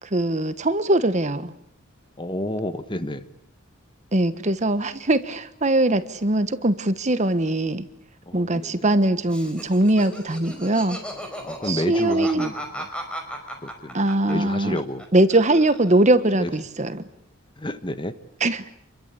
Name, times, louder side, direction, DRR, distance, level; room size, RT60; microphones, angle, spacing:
voice 1, 0.0-1.5 4.1-7.9 8.3-11.0 11.6-12.5 13.9-14.8 15.1-17.0 18.4-18.6, right 1 dB, 35° right, 12 dB, 1.3 m, -21 dB
voice 2, 2.2-3.3 8.3-8.9 11.4-12.9 13.6-14.0 14.3-15.0 16.4-16.5 17.6-18.2, left 1 dB, 20° left, 11 dB, 1.3 m, -30 dB
Laughter, 9.3-15.0 15.3-16.1, equal, 5° left, 5.1 m, -36 dB
28.0 x 22.5 x 8.4 m, 0.68 s
head